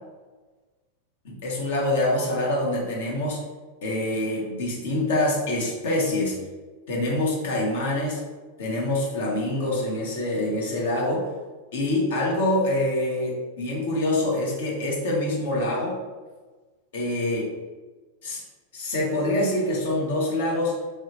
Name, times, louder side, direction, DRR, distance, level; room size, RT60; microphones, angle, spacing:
voice 1, 1.2-3.4 3.8-6.4 6.9-8.2 8.6-11.3 11.7-16.0 16.9-17.5 18.2-18.4 18.7-20.7, left 1 dB, 55° left, -3 dB, 0.9 m, -25 dB
3.2 x 2.7 x 2.7 m, 1.3 s
figure-of-eight pair, 90°, 0 cm